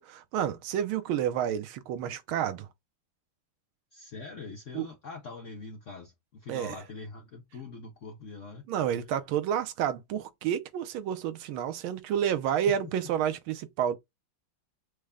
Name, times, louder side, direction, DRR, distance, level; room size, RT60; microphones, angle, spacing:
voice 1, 0.0-2.7 4.7-4.9 6.5-6.8 8.7-14.0, right 9 dB, 80° right, 1.4 m, -30 dB
voice 2, 3.9-8.6 12.5-12.6, left 3 dB, 65° left, 0.7 m, -43 dB
6.4 x 2.2 x 3.5 m
omnidirectional pair, 2.3 m